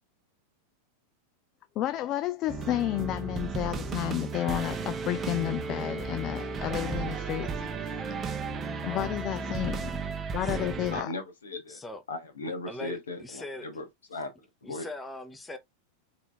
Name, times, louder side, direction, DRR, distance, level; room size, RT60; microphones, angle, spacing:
voice 1, 1.8-8.2 8.8-9.9 10.3-11.1, left 14 dB, 35° left, 0.4 m, -31 dB
sound 1, 2.5-11.0, right 4 dB, 20° right, 0.7 m, -34 dB
voice 2, 8.8-9.2 10.4-10.8 11.7-12.0 12.7-13.7 14.6-15.6, left 1 dB, 10° left, 0.9 m, -41 dB
voice 3, 10.9-11.8 12.1-14.9, left 2 dB, 70° left, 1.4 m, -38 dB
4.7 x 3.3 x 3.4 m
figure-of-eight pair, 90°, 0 cm